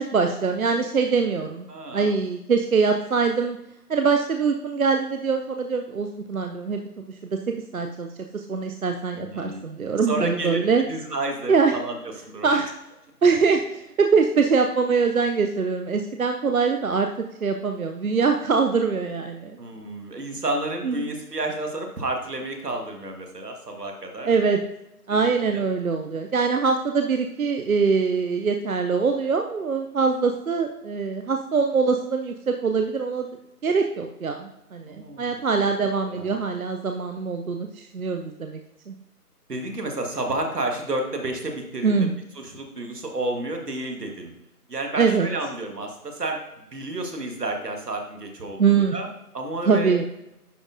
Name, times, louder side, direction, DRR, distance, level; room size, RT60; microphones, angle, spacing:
voice 1, 0.0-1.7 1.9-3.6 3.9-6.8 7.2-8.1 8.3-10.8 11.5-11.7 12.4-12.7 13.2-17.1 17.4-19.6 20.8-21.0 24.2-24.6 25.1-33.3 33.6-38.6 38.9-39.0 41.8-42.1 45.0-45.3 48.6-48.9 49.6-50.1, right 5 dB, 65° right, 4 dB, 0.5 m, -23 dB
voice 2, 1.7-2.2 9.1-9.6 10.1-10.6 10.9-12.6 19.6-24.3 25.1-25.7 34.9-35.7 36.1-36.4 39.5-42.1 42.3-44.3 44.7-46.4 46.7-49.1 49.3-50.0, right 2 dB, 80° right, 3 dB, 1.5 m, -31 dB
10.0 x 4.3 x 2.5 m, 0.88 s
figure-of-eight pair, 175°, 47 cm